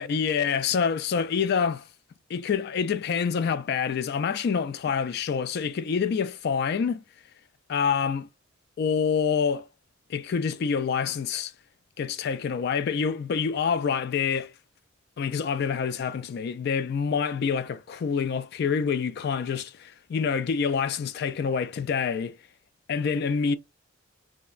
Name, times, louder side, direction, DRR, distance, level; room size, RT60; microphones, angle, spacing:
voice 1, 0.0-1.8 2.3-7.0 7.7-8.3 8.8-9.7 10.1-11.5 12.0-14.5 15.2-22.4 22.9-23.6, left 6 dB, 55° left, 0.3 m, -27 dB
3.7 x 2.1 x 2.4 m
head